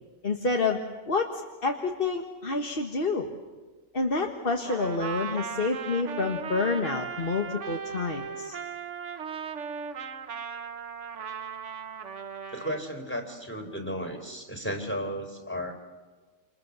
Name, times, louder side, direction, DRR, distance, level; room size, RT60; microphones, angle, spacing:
voice 1, 0.2-0.8 1.1-3.3 3.9-8.6, left 3 dB, 35° left, 3 dB, 1.6 m, -28 dB
Trumpet, 4.6-12.9, right 6 dB, 50° right, 1.3 m, -37 dB
voice 2, 12.5-15.7, equal, 5° left, 4 dB, 3.9 m, -34 dB
28.5 x 28.5 x 7.0 m, 1.4 s
omnidirectional pair, 1.8 m